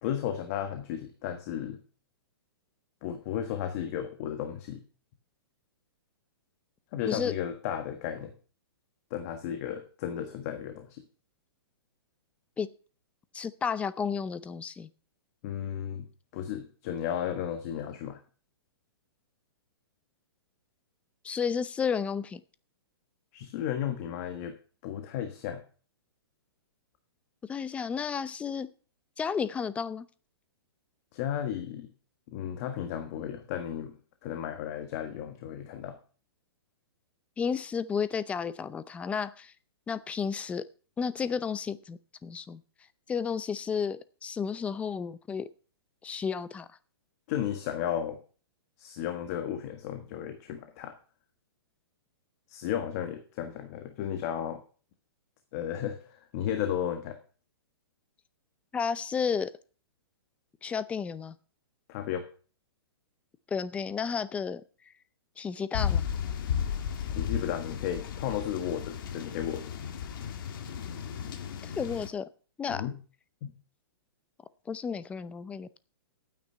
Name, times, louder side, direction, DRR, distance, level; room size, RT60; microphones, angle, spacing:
voice 1, 0.0-1.8 3.0-4.8 6.9-8.3 9.1-11.0 15.4-16.1 16.3-18.2 23.3-24.5 24.8-25.6 31.1-31.9 32.3-33.9 34.2-36.0 47.3-48.2 48.8-50.9 52.5-54.6 55.5-57.2 61.9-62.3 67.1-69.7 72.7-73.0 73.4-73.6, left 9 dB, 40° left, 7 dB, 1.5 m, -34 dB
voice 2, 13.3-14.9 21.2-22.4 27.5-28.7 29.2-30.1 37.4-39.5 39.9-40.7 41.0-42.6 43.1-45.5 46.0-46.7 58.7-59.5 60.6-61.3 63.5-64.6 65.4-66.0 71.6-72.3 72.6-72.8 74.7-75.7, left 6 dB, 10° left, 15 dB, 0.6 m, -32 dB
sound 1, 65.7-72.1, left 8 dB, 55° left, 1.9 m, -34 dB
12.5 x 9.3 x 5.6 m, 0.39 s
hypercardioid pair, 150°, 13 cm